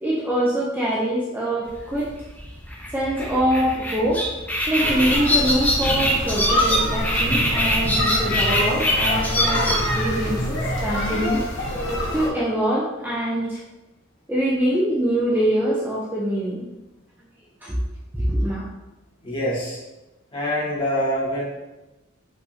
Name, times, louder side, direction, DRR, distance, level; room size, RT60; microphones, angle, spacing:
voice 1, 0.0-2.1 2.9-4.3 4.7-11.4 12.1-13.6 14.3-16.7 17.6-17.8 18.1-18.6, right 1 dB, 10° right, -6 dB, 0.5 m, -24 dB
sound 1, 1.7-11.8, equal, 10° left, 0.9 m, -24 dB
sound 2, 4.8-12.3, left 1 dB, 60° left, 1.1 m, -25 dB
voice 2, 19.2-19.8 20.3-21.4, equal, 25° left, -8 dB, 1.6 m, -25 dB
5.3 x 3.5 x 2.7 m, 1.0 s
head